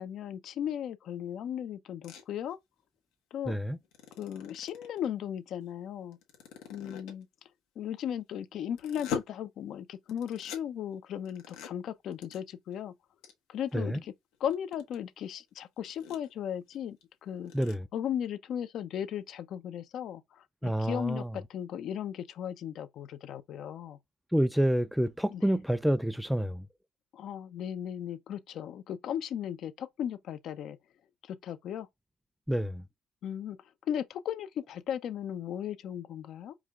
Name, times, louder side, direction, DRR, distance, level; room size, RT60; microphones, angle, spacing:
voice 1, 0.0-2.6 3.3-3.6 4.2-6.2 6.7-7.3 7.8-12.9 13.5-14.1 14.4-17.0 17.2-17.5 17.9-24.0 25.3-25.4 27.1-30.8 31.2-31.9 33.2-33.6 33.9-36.5, left 9 dB, 65° left, 0.6 m, -36 dB
sound 1, 2.0-2.2 3.8-5.1 6.1-7.2 8.7-9.2 10.1-10.6 11.2-11.7 12.1-12.4 12.7-12.8 13.2-13.3 13.7-13.8 14.3-14.9 15.4-15.5 15.8-16.3 16.7-16.8 17.0-17.1 17.4-17.7, left 6 dB, 85° left, 1.2 m, -40 dB
voice 2, 3.5-3.8 13.7-14.0 17.5-17.9 20.6-21.3 24.3-26.7 32.5-32.8, equal, ahead, 0.3 m, -28 dB
4.8 x 2.3 x 3.6 m
cardioid pair, 90°, 0 cm